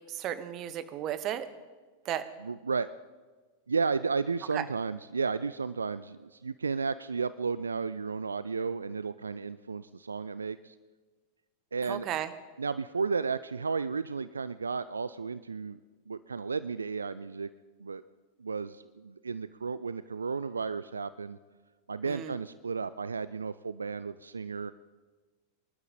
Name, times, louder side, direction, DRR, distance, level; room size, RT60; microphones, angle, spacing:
voice 1, 0.1-1.5 2.0-2.2 4.5-4.7 11.9-12.3 22.0-22.4, right 11 dB, 35° right, 13 dB, 1.0 m, -34 dB
voice 2, 2.4-2.9 3.7-10.7 11.7-12.1 12.6-15.8 16.1-17.5 17.8-18.0 18.4-21.4 21.9-24.7, right 5 dB, 75° right, 15 dB, 0.3 m, -33 dB
24.0 x 12.0 x 4.2 m, 1.3 s
figure-of-eight pair, 90°, 0 cm